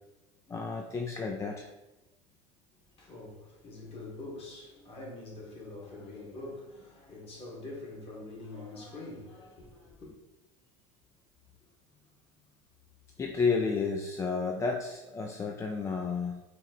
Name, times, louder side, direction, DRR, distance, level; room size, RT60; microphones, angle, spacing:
voice 1, 0.5-1.7 13.2-16.4, left 4 dB, 20° left, 0.3 m, -31 dB
voice 2, 2.8-10.1, left 2 dB, 40° left, 1.4 m, -45 dB
4.2 x 2.0 x 3.8 m
hypercardioid pair, 95°, 16 cm